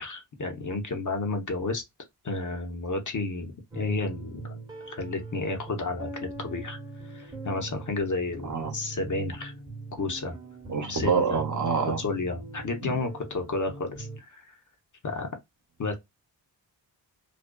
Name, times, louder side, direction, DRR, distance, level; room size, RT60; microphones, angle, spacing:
voice 1, 0.0-1.8 2.2-4.5 4.9-6.8 7.1-9.5 9.9-10.4 10.9-11.4 12.0-14.5 15.0-15.3 15.8-15.9, left 3 dB, 40° left, 0.8 m, -31 dB
sound 1, 3.7-14.2, right 3 dB, 10° right, 0.9 m, -41 dB
voice 2, 10.7-12.0 12.8-13.0, right 6 dB, 40° right, 0.9 m, -27 dB
2.5 x 2.3 x 2.2 m
cardioid pair, 60°, 45 cm